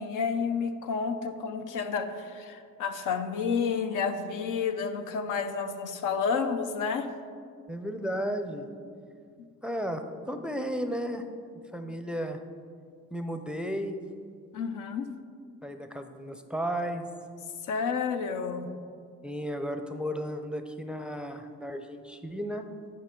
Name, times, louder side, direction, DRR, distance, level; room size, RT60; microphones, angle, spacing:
voice 1, 0.0-7.1 14.5-15.1 17.6-18.7, left 5 dB, 75° left, 8 dB, 0.7 m, -30 dB
voice 2, 7.7-8.7 9.6-11.2 11.7-12.4 13.1-14.0 15.6-17.0 19.2-22.6, equal, 5° right, 6 dB, 0.5 m, -34 dB
10.0 x 5.1 x 3.7 m, 2.2 s
cardioid pair, 80°, 31 cm